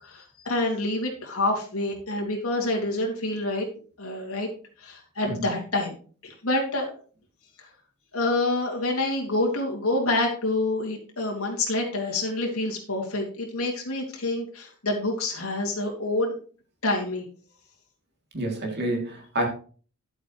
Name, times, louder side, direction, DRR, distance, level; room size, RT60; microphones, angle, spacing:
voice 1, 0.0-3.7 4.0-4.5 4.8-5.9 6.2-7.0 8.1-16.3 16.8-17.2, left 2 dB, 70° left, -1 dB, 2.8 m, -27 dB
voice 2, 18.3-19.5, right 1 dB, 50° right, 0 dB, 3.2 m, -28 dB
11.0 x 8.2 x 3.3 m, 0.41 s
head